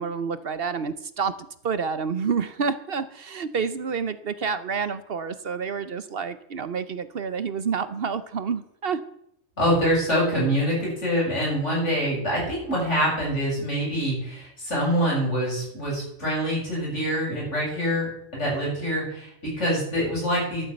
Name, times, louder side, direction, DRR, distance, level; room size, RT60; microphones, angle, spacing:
voice 1, 0.0-1.3 1.6-9.0, right 6 dB, 55° right, 13 dB, 0.9 m, -28 dB
voice 2, 9.6-20.6, equal, 75° left, -4 dB, 8.2 m, -25 dB
12.0 x 9.4 x 7.8 m, 0.72 s
omnidirectional pair, 1.2 m